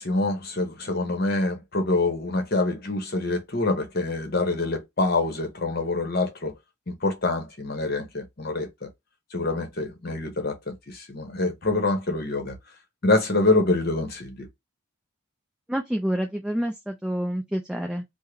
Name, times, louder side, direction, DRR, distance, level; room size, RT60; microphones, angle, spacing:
voice 1, 0.0-6.5 6.9-8.9 9.3-12.6 13.0-14.5, left 2 dB, 45° left, 1.0 m, -26 dB
voice 2, 15.7-18.0, equal, 5° right, 0.3 m, -28 dB
3.6 x 2.1 x 3.1 m
head